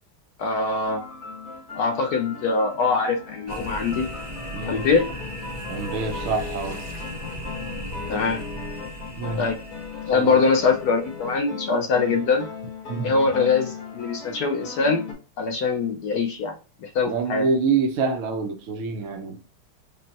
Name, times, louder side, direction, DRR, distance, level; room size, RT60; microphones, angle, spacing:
voice 1, 0.4-1.0 1.7-4.1 4.6-5.1 8.1-8.4 9.4-9.6 10.1-12.5 13.0-15.0 15.4-16.5 16.8-17.5, left 4 dB, 65° left, 1.0 m, -23 dB
sound 1, 0.8-15.1, left 5 dB, 45° left, 1.4 m, -38 dB
sound 2, 3.5-11.4, equal, 35° right, 0.5 m, -37 dB
voice 2, 4.5-4.9 5.7-6.8 9.2-9.5 10.1-10.4 12.1-12.2 12.9-13.2 17.0-19.4, right 4 dB, 80° right, 0.7 m, -26 dB
5.2 x 2.1 x 2.8 m
omnidirectional pair, 2.2 m